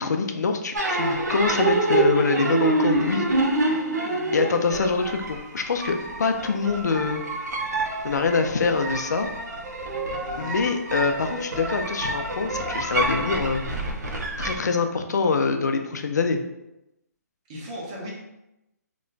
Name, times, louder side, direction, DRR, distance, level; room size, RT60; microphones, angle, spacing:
voice 1, 0.0-3.3 4.3-7.2 8.0-9.3 10.4-13.6 14.4-16.4, left 4 dB, 85° left, 6 dB, 0.4 m, -24 dB
sound 1, 0.7-14.6, right 2 dB, 85° right, 0.7 m, -27 dB
voice 2, 10.2-10.6 17.5-18.1, equal, 25° right, -3 dB, 0.7 m, -37 dB
3.0 x 2.1 x 3.8 m, 0.90 s
hypercardioid pair, 165°, 9 cm